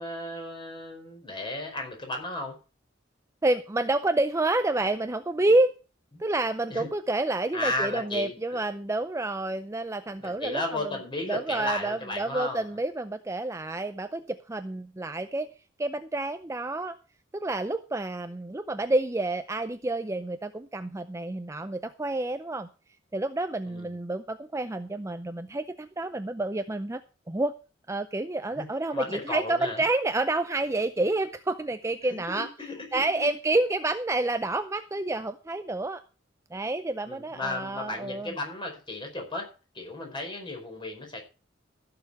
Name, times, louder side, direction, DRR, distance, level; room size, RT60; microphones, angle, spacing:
voice 1, 0.0-2.6 6.1-6.2 6.7-6.9 7.5-8.6 10.2-12.7 23.7-23.9 28.6-29.8 32.1-33.3 37.0-39.5 39.7-41.2, left 2 dB, 25° left, 2 dB, 4.8 m, -34 dB
voice 2, 3.4-5.7 6.2-10.9 11.3-15.5 15.8-17.0 17.3-22.7 23.1-27.0 27.3-27.6 27.9-32.5 32.9-36.0 36.5-38.3, right 2 dB, 15° right, 10 dB, 0.5 m, -29 dB
15.0 x 6.9 x 5.6 m, 0.33 s
head